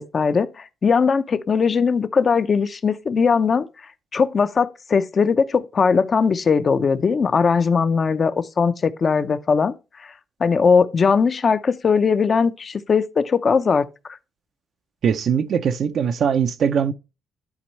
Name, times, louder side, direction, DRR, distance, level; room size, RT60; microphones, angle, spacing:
voice 1, 0.0-3.7 4.1-9.7 10.0-10.1 10.4-13.9, left 5 dB, 45° left, 0.5 m, -19 dB
voice 2, 15.0-16.9, right 7 dB, 65° right, 0.5 m, -21 dB
10.5 x 4.4 x 3.1 m
cardioid pair, 85°, 0 cm